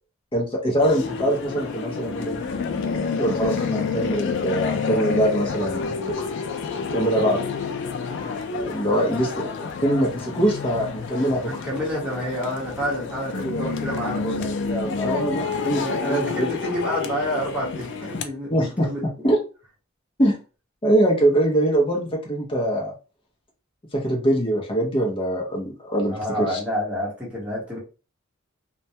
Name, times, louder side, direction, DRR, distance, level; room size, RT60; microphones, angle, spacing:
voice 1, 0.3-2.4 3.1-6.3 6.9-7.4 8.5-9.5 9.8-11.5 13.3-13.7 14.4-15.8 16.1-16.5 18.5-18.9 19.2-19.4 20.2-20.4 20.8-22.9 23.9-26.2 26.5-26.6, right 1 dB, 25° left, 0.6 m, -23 dB
sound 1, 0.8-18.3, left 5 dB, 60° left, 0.4 m, -29 dB
voice 2, 11.5-14.4 15.8-19.3 26.1-27.8, equal, 5° right, 1.0 m, -29 dB
2.2 x 2.2 x 2.7 m
head